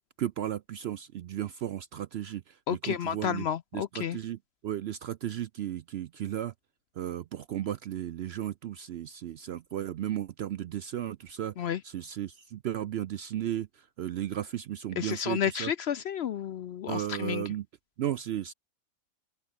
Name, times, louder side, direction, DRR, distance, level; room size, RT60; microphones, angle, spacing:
voice 1, 0.2-3.5 3.7-6.5 7.0-15.7 16.9-17.7 18.0-18.5, right 11 dB, 65° right, 0.6 m, -35 dB
voice 2, 2.7-4.2 11.6-11.8 15.0-17.4, left 9 dB, 60° left, 0.7 m, -31 dB
open air
omnidirectional pair, 1.5 m